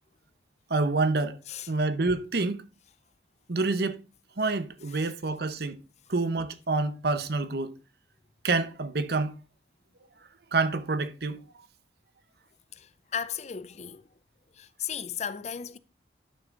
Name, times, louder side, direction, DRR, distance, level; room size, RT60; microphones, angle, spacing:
voice 1, 0.7-1.4 1.7-2.7 3.5-4.0 4.4-5.8 6.1-7.7 8.4-9.4 10.5-11.4, right 3 dB, 60° right, 0.8 m, -27 dB
voice 2, 12.7-14.0 14.5-15.8, left 8 dB, 40° left, 0.5 m, -36 dB
11.0 x 6.3 x 2.5 m
head